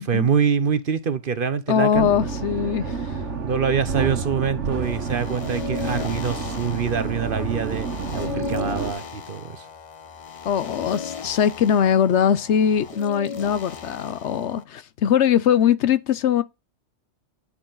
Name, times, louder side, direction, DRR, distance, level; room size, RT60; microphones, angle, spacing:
voice 1, 0.0-2.1 3.4-7.9 8.1-9.7, right 6 dB, 50° right, 0.9 m, -25 dB
voice 2, 1.7-3.1 10.4-16.4, left 8 dB, 70° left, 1.0 m, -21 dB
sound 1, 1.9-8.9, right 5 dB, 70° right, 1.6 m, -29 dB
sound 2, 4.8-14.6, left 6 dB, 40° left, 0.5 m, -36 dB
9.8 x 6.5 x 3.9 m
omnidirectional pair, 1.3 m